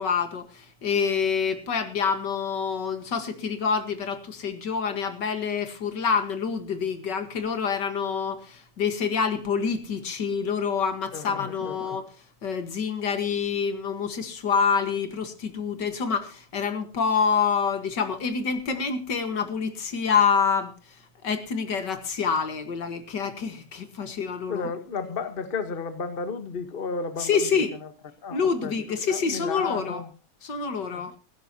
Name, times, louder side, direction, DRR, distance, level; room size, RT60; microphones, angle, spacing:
voice 1, 0.0-12.1 12.4-24.7 27.2-27.8 28.3-30.0 30.4-31.1, left 6 dB, 65° left, 2.2 m, -27 dB
voice 2, 24.5-27.6 28.2-28.8 29.1-30.1 30.9-31.2, left 4 dB, 30° left, 1.3 m, -33 dB
17.5 x 15.5 x 2.9 m
omnidirectional pair, 2.1 m